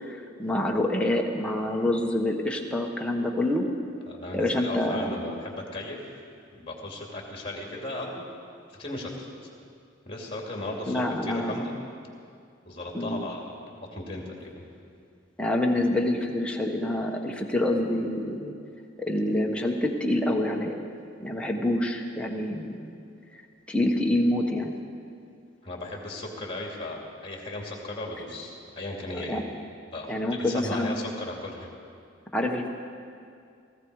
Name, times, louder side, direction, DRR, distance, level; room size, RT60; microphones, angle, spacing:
voice 1, 0.0-3.7 4.3-5.1 10.9-11.6 12.9-13.3 15.4-18.5 19.0-20.7 21.2-23.0 23.3-23.4 23.7-24.7 29.3-29.4 30.1-31.0 32.3-32.7, left 1 dB, 5° left, 0 dB, 1.2 m, -27 dB
voice 2, 4.1-6.0 6.5-8.3 8.7-9.3 10.0-11.7 12.7-14.5 25.6-29.4 29.9-31.7, left 2 dB, 30° left, 0 dB, 2.6 m, -36 dB
18.0 x 15.0 x 4.8 m, 2.3 s
head